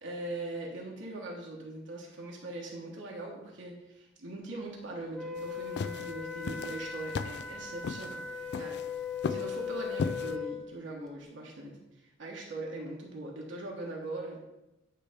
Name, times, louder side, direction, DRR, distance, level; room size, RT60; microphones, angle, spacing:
voice 1, 0.0-8.8 9.3-14.4, right 2 dB, 75° right, -2 dB, 1.4 m, -41 dB
Wind instrument woodwind instrument, 5.1-10.6, left 7 dB, 5° left, 0.5 m, -38 dB
sound 1, 5.4-10.3, left 4 dB, 60° left, 0.3 m, -36 dB
9.1 x 3.3 x 5.2 m, 0.94 s
head